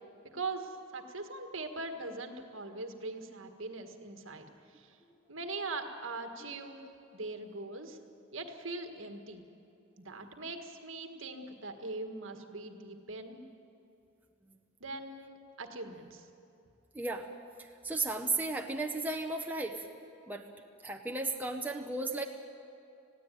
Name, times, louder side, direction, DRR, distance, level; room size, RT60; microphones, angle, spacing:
voice 1, 0.2-5.0 5.3-6.8 7.1-8.0 8.3-9.4 10.0-13.4 14.8-16.3, right 3 dB, 65° right, 6 dB, 1.7 m, -41 dB
voice 2, 16.9-17.3 17.6-19.9 20.3-20.5 20.8-22.2, right 3 dB, 10° right, 2 dB, 0.9 m, -35 dB
20.5 x 15.5 x 9.2 m, 2.7 s
head